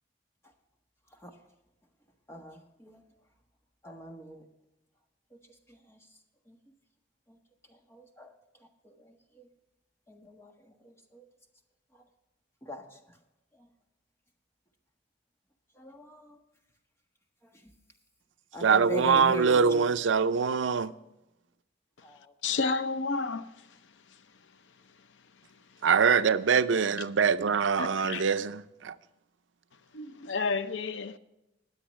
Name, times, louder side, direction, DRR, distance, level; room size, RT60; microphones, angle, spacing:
voice 1, 2.3-3.0 3.8-4.4 5.3-5.4 5.7-6.0 6.5-6.6 7.3-7.4 7.7-8.3 8.8-9.5 10.1-11.3 12.6-13.0 13.5-13.7 15.7-16.4 17.6-17.7 18.5-19.8 22.0-22.3, right 1 dB, 15° left, 1.4 m, -41 dB
voice 2, 18.6-20.9 25.8-28.9, right 6 dB, 85° right, 0.5 m, -24 dB
voice 3, 22.4-23.5 27.8-28.2 29.9-31.2, left 4 dB, 80° left, 0.7 m, -31 dB
20.5 x 7.9 x 3.2 m
head